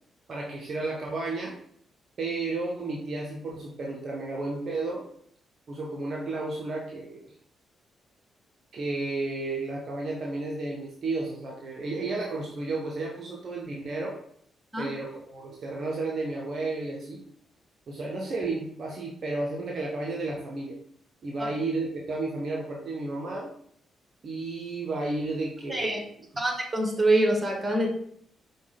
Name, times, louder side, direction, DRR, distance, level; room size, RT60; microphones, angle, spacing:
voice 1, 0.3-1.6 2.2-5.0 5.7-7.3 8.7-14.2 14.8-17.2 17.9-20.8 21.2-23.5 24.2-26.1, right 2 dB, 50° right, -2 dB, 0.7 m, -32 dB
voice 2, 26.4-27.9, right 1 dB, 20° right, 0 dB, 1.4 m, -25 dB
5.1 x 2.3 x 3.3 m, 0.65 s
hypercardioid pair, 40°, 0 cm